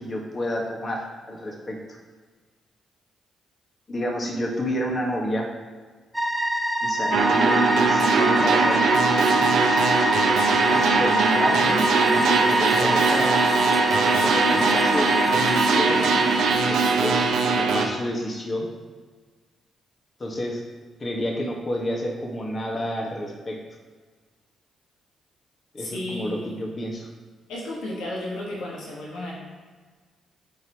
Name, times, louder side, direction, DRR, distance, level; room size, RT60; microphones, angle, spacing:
voice 1, 0.0-1.8 3.9-5.5 6.8-9.5 10.7-13.4 14.2-18.7 20.2-20.6 21.0-23.6 25.7-27.1, equal, 40° left, -1 dB, 1.7 m, -30 dB
sound 1, 6.1-16.6, equal, 10° right, 0.9 m, -25 dB
sound 2, 7.1-17.9, right 4 dB, 75° right, 0.9 m, -21 dB
voice 2, 25.8-26.6 27.5-29.3, left 1 dB, 80° left, -4 dB, 1.4 m, -33 dB
11.0 x 4.6 x 3.1 m, 1.4 s
hypercardioid pair, 45°, 0 cm